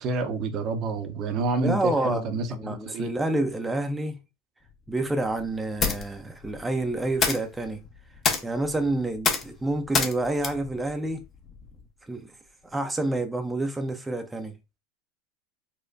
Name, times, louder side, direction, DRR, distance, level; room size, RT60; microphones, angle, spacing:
voice 1, 0.0-3.1, right 3 dB, 45° right, 0.7 m, -28 dB
voice 2, 1.6-4.2 4.9-7.8 8.4-11.2 12.0-12.3 12.6-14.6, right 2 dB, 10° right, 0.5 m, -28 dB
sound 1, 4.6-11.9, left 5 dB, 35° left, 0.8 m, -31 dB
4.2 x 2.2 x 2.5 m
hypercardioid pair, 85°, 0 cm